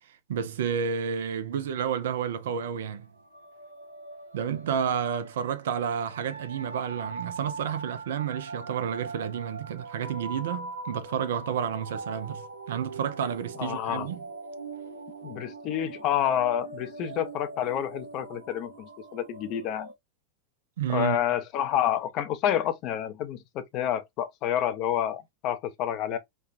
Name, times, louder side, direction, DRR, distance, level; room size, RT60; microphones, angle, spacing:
voice 1, 0.0-3.1 4.3-14.2 20.8-21.2, right 8 dB, 60° right, 0.4 m, -30 dB
sound 1, 3.1-19.9, right 3 dB, 85° right, 0.8 m, -42 dB
voice 2, 13.6-14.1 15.2-19.9 20.9-26.2, left 10 dB, 40° left, 0.5 m, -29 dB
3.2 x 2.2 x 2.5 m
figure-of-eight pair, 90°, 0 cm